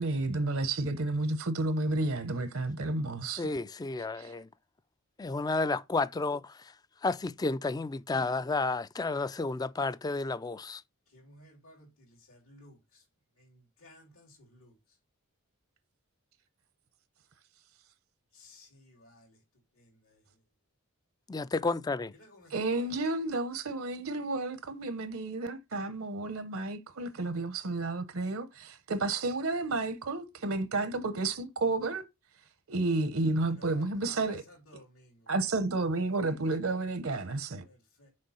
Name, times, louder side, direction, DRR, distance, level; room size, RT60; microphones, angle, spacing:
voice 1, 0.0-3.5 4.2-4.3 22.5-32.0 32.7-34.4 35.3-37.6, right 2 dB, 70° right, 0.8 m, -31 dB
voice 2, 3.4-4.5 5.2-6.7 7.0-10.8 21.3-22.1, left 3 dB, 20° left, 0.3 m, -31 dB
voice 3, 11.1-13.0 13.4-14.7 18.3-19.4 19.8-20.2 22.2-22.9 33.6-35.3 37.6-38.1, left 1 dB, 85° left, 3.2 m, -56 dB
6.5 x 4.5 x 5.5 m
head